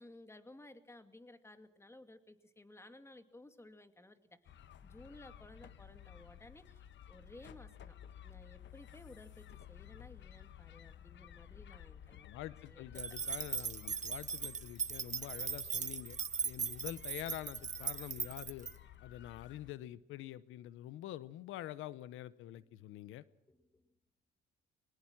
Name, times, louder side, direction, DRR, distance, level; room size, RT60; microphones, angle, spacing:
voice 1, 0.0-4.6 4.8-8.0 8.2-12.3 12.7-13.3 23.5-23.9, left 1 dB, 15° left, 9 dB, 2.4 m, -57 dB
sound 1, 4.5-19.7, left 10 dB, 65° left, 1.3 m, -55 dB
voice 2, 12.2-16.2 16.4-18.7 19.0-23.2, left 13 dB, 90° left, 17 dB, 0.8 m, -46 dB
sound 2, 12.9-18.7, right 6 dB, 35° right, 1.0 m, -39 dB
23.5 x 20.5 x 6.0 m, 0.89 s
cardioid pair, 90°, 20 cm